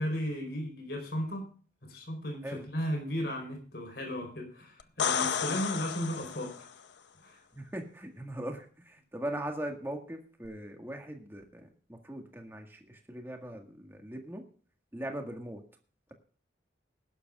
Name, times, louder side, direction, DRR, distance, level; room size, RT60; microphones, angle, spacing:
voice 1, 0.0-1.5 1.8-6.6 7.2-7.4, equal, 60° left, 3 dB, 4.4 m, -35 dB
sound 1, 4.8-6.7 10.4-10.5, left 7 dB, 80° left, 0.7 m, -32 dB
voice 2, 7.5-14.4 14.9-15.6, right 1 dB, 15° right, 2 dB, 1.8 m, -40 dB
20.5 x 11.5 x 2.5 m, 0.42 s
head